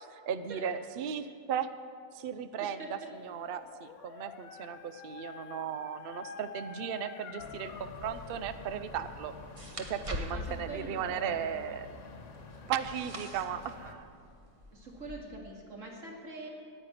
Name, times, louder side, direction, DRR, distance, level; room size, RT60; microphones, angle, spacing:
voice 1, 0.1-1.7 2.1-2.8 3.2-9.3 9.7-11.9 12.7-14.1, right 8 dB, 80° right, 11 dB, 0.5 m, -36 dB
voice 2, 2.6-3.1 10.3-11.5 14.7-16.5, right 2 dB, 50° right, -1 dB, 2.5 m, -44 dB
Dog, 3.3-8.4, left 6 dB, 70° left, 1.1 m, -47 dB
sound 1, 7.4-13.9, left 3 dB, 50° left, 1.4 m, -49 dB
sound 2, 8.0-15.2, equal, 25° right, 0.9 m, -45 dB
9.9 x 9.0 x 10.0 m, 2.2 s
omnidirectional pair, 1.7 m